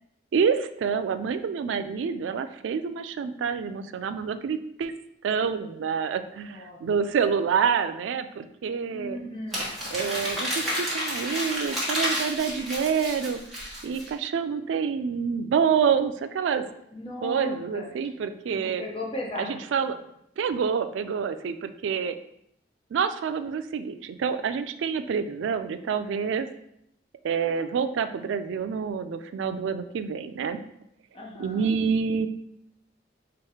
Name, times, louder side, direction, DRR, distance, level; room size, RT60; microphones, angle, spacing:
voice 1, 0.3-4.9 5.2-9.2 9.9-13.4 13.8-16.6 17.2-18.8 19.4-20.0 20.4-22.2 22.9-26.5 27.2-30.6 31.4-32.3, right 6 dB, 85° right, 11 dB, 0.3 m, -27 dB
voice 2, 6.3-6.8 8.9-9.7 16.9-17.9 18.5-19.6 31.1-31.7, left 1 dB, 30° left, -1 dB, 0.8 m, -36 dB
Crumpling crinkling, 9.5-14.1, equal, ahead, 1.1 m, -30 dB
3.5 x 2.9 x 4.8 m, 0.75 s
head